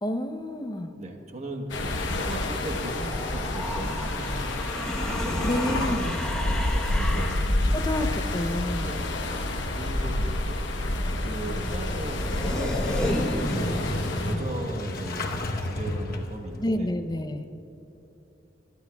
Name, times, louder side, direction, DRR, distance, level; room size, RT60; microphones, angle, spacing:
voice 1, 0.0-0.9 5.4-6.2 7.7-9.0 16.6-17.5, left 1 dB, 20° left, 7 dB, 0.6 m, -29 dB
voice 2, 0.9-4.2 4.9-6.1 6.9-7.4 8.8-10.1 10.4-10.6 11.2-15.3 15.6-16.9, right 1 dB, 40° right, 2 dB, 1.1 m, -38 dB
sound 1, 1.7-14.3, left 1 dB, 80° left, 1.0 m, -29 dB
sound 2, 1.9-7.7 11.5-11.6 11.8-13.8, left 1 dB, 5° left, 1.0 m, -34 dB
Motorcycle / Engine starting, 10.8-16.6, left 1 dB, 55° left, 1.0 m, -32 dB
28.5 x 11.5 x 2.3 m, 2.9 s
head